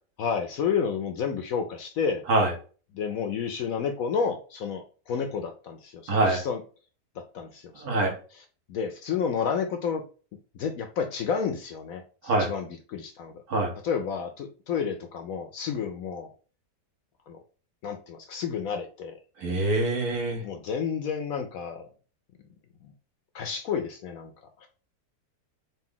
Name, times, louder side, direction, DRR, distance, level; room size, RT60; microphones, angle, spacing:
voice 1, 0.2-2.2 2.9-6.6 7.2-10.0 10.5-13.4 13.8-16.3 17.3-17.4 17.8-19.2 20.4-21.9 22.8-22.9 23.3-24.3, left 6 dB, 70° left, 6 dB, 0.9 m, -31 dB
voice 2, 6.1-6.4 7.8-8.1 12.2-12.5 13.5-13.7 19.4-20.4, right 2 dB, 65° right, 1 dB, 1.6 m, -24 dB
4.0 x 2.5 x 3.7 m, 0.38 s
omnidirectional pair, 1.8 m